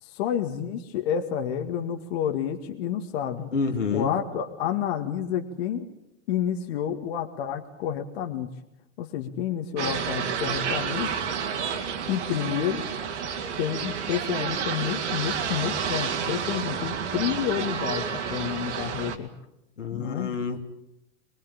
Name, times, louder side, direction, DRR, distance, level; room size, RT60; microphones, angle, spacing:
voice 1, 0.0-3.5 3.9-5.9 6.3-8.5 9.0-11.1 12.1-12.9 13.6-19.3 19.9-20.3, left 9 dB, 55° left, 4 dB, 2.1 m, -29 dB
voice 2, 3.5-4.1 19.8-20.6, left 5 dB, 80° left, 4 dB, 2.7 m, -28 dB
sound 1, 9.8-19.2, right 7 dB, 70° right, 2.8 m, -30 dB
23.5 x 22.0 x 8.8 m, 0.86 s
figure-of-eight pair, 95°, 37 cm